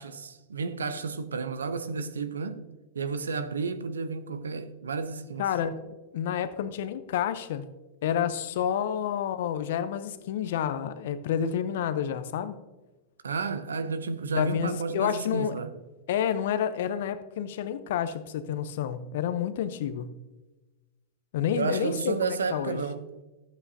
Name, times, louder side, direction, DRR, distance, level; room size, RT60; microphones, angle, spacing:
voice 1, 0.0-2.7 2.9-5.4 13.2-15.7 21.6-23.0, right 4 dB, 85° right, 0.7 m, -32 dB
voice 2, 5.4-7.7 8.0-12.6 14.3-15.6 16.1-20.1 21.3-22.8, left 9 dB, 65° left, 0.7 m, -29 dB
12.0 x 8.2 x 2.8 m
hypercardioid pair, 100°, 0 cm